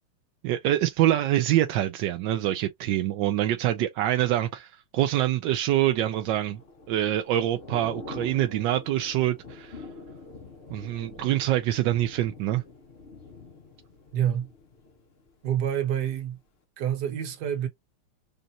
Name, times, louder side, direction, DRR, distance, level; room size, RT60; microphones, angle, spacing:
voice 1, 0.4-6.6 6.9-9.9 10.7-12.6, right 13 dB, 75° right, 1.1 m, -25 dB
Thunder / Rain, 5.8-15.8 16.1-16.4, left 3 dB, 55° left, 0.6 m, -45 dB
voice 2, 14.1-14.5 15.4-16.4 16.8-17.7, right 10 dB, 55° right, 1.4 m, -27 dB
5.2 x 2.5 x 2.7 m
omnidirectional pair, 2.4 m